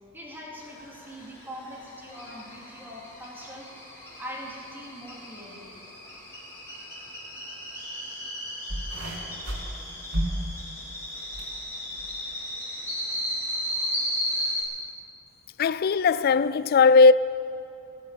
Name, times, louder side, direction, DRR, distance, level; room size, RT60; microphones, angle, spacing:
voice 1, 0.1-3.7 4.2-5.7, equal, 10° right, 2.8 m, -42 dB
sound 1, 0.6-14.6, equal, 10° left, 3.3 m, -35 dB
sound 2, 8.7-11.5 11.9-12.3 13.1-13.2, equal, 80° right, 3.3 m, -32 dB
voice 2, 15.6-17.1, left 4 dB, 45° left, 0.3 m, -18 dB
18.0 x 8.3 x 8.9 m
head